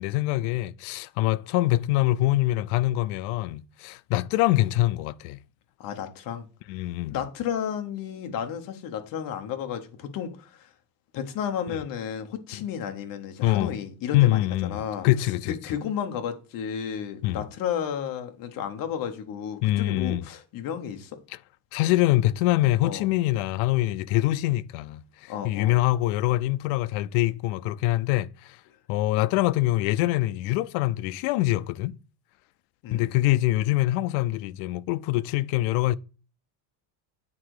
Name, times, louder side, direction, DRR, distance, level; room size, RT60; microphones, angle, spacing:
voice 1, 0.0-5.4 6.7-7.2 11.7-11.8 13.4-13.7 14.1-15.6 17.2-17.5 19.6-20.2 21.7-28.6 28.9-32.0 32.9-36.0, left 16 dB, 75° left, 0.6 m, -24 dB
voice 2, 5.8-6.5 7.1-10.7 11.1-21.2 22.8-23.1 25.3-25.8 28.7-28.8 32.8-33.1, left 8 dB, 45° left, 1.1 m, -33 dB
8.6 x 3.8 x 4.7 m
cardioid pair, 175°, 48 cm